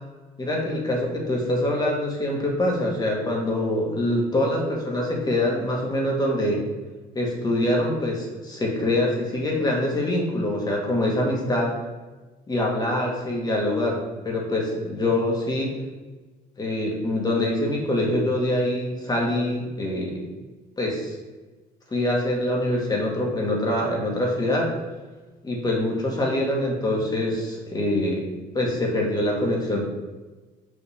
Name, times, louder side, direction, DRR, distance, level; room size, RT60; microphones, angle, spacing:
voice 1, 0.4-6.6 7.2-11.7 12.5-15.7 16.6-20.3 20.8-21.1 21.9-24.7 25.4-28.2 28.5-29.8, left 1 dB, 25° left, -2 dB, 1.7 m, -24 dB
5.7 x 5.3 x 3.5 m, 1.3 s
cardioid pair, 110°, 17 cm